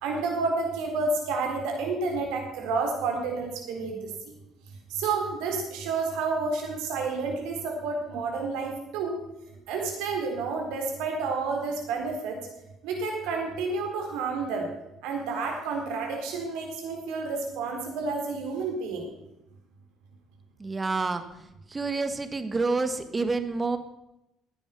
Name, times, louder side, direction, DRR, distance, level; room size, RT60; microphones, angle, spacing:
voice 1, 0.0-4.1 4.9-9.2 9.7-12.4 12.8-14.7 15.0-19.1, right 4 dB, 70° right, 2 dB, 4.1 m, -30 dB
voice 2, 20.6-21.2 21.7-23.8, right 3 dB, 25° right, 10 dB, 1.5 m, -28 dB
15.5 x 9.8 x 6.0 m, 0.88 s
hypercardioid pair, 60°, 0 cm